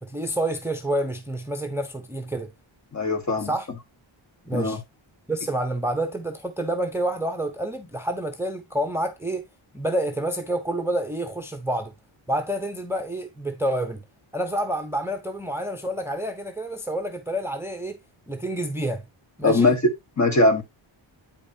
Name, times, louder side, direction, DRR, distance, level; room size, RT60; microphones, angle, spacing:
voice 1, 0.0-2.5 3.4-3.7 4.5-4.8 5.3-9.4 9.7-11.9 12.3-14.0 14.3-18.0 18.3-19.0 19.4-19.7, right 1 dB, 5° right, 0.7 m, -28 dB
voice 2, 2.9-3.5 4.5-4.8 19.4-19.8 20.2-20.6, left 2 dB, 35° left, 1.4 m, -20 dB
8.7 x 5.2 x 2.7 m
wide cardioid pair, 140°, 49 cm